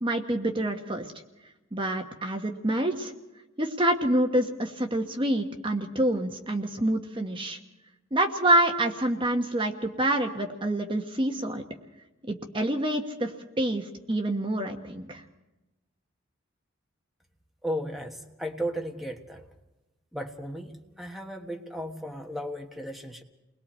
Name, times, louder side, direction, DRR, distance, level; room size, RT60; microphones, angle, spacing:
voice 1, 0.0-1.1 1.7-3.1 3.6-7.6 8.1-11.6 12.2-15.2, right 1 dB, 25° right, 4 dB, 1.2 m, -27 dB
voice 2, 17.6-19.5 20.1-23.2, equal, ahead, 2 dB, 1.3 m, -35 dB
30.0 x 21.0 x 4.4 m, 1.0 s
head